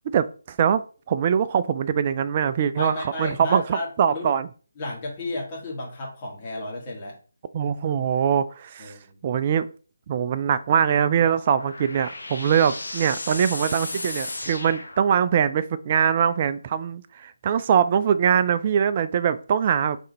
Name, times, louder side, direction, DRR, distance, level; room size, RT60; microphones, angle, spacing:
voice 1, 0.1-0.8 1.1-4.5 7.5-8.9 9.2-9.7 10.1-20.0, right 8 dB, 30° right, 13 dB, 0.3 m, -22 dB
voice 2, 2.8-4.4 4.8-7.2 8.8-9.2 12.4-12.5, left 1 dB, 25° left, -3 dB, 1.7 m, -33 dB
sound 1, 11.1-15.6, left 2 dB, 70° left, 1.1 m, -35 dB
3.6 x 3.3 x 4.1 m, 0.38 s
figure-of-eight pair, 150°, 0 cm